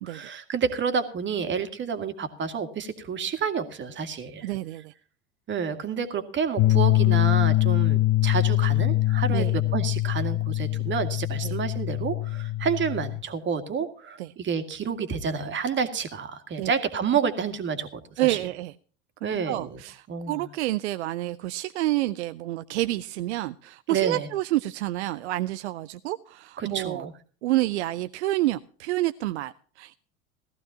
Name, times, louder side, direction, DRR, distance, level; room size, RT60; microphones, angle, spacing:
voice 1, 0.0-4.5 5.5-18.4 19.2-19.8 20.1-20.5 23.9-24.3 26.6-27.1, right 6 dB, 30° right, 2.1 m, -29 dB
voice 2, 4.4-4.9 9.3-9.6 11.4-11.6 14.2-14.3 16.6-16.7 18.2-18.7 19.2-27.1 27.4-30.0, right 16 dB, 60° right, 0.7 m, -29 dB
sound 1, 6.6-13.2, left 16 dB, 30° left, 0.7 m, -23 dB
18.0 x 14.5 x 2.8 m
figure-of-eight pair, 80°, 39 cm